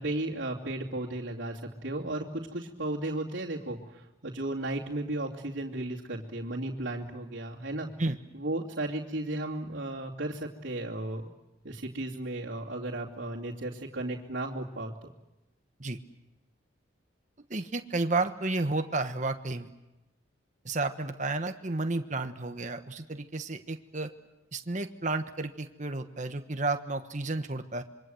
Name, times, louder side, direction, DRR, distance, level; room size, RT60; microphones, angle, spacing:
voice 1, 0.0-7.9 8.3-11.3 11.6-15.1, right 1 dB, 75° right, -6 dB, 2.7 m, -35 dB
voice 2, 17.5-19.7 20.6-24.1 24.5-27.8, right 2 dB, 40° right, 7 dB, 1.3 m, -32 dB
26.5 x 24.0 x 7.8 m, 0.99 s
head